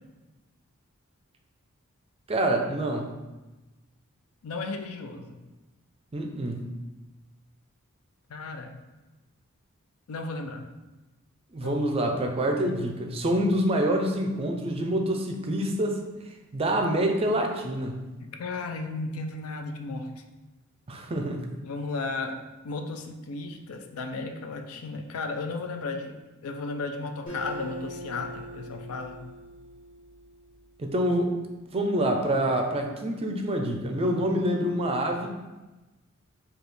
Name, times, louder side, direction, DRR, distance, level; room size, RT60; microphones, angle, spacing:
voice 1, 2.3-3.1 6.1-6.7 11.5-16.0 16.5-18.0 20.9-21.5 30.8-31.3 31.7-35.3, right 1 dB, 25° right, 3 dB, 0.4 m, -26 dB
voice 2, 4.4-5.4 8.3-8.8 10.1-10.7 11.6-11.9 18.3-20.1 21.6-26.2 26.4-29.2, left 3 dB, 85° left, 5 dB, 0.4 m, -34 dB
Acoustic guitar, 27.3-30.7, equal, 25° left, 1.5 m, -42 dB
4.9 x 2.4 x 3.1 m, 1.1 s
head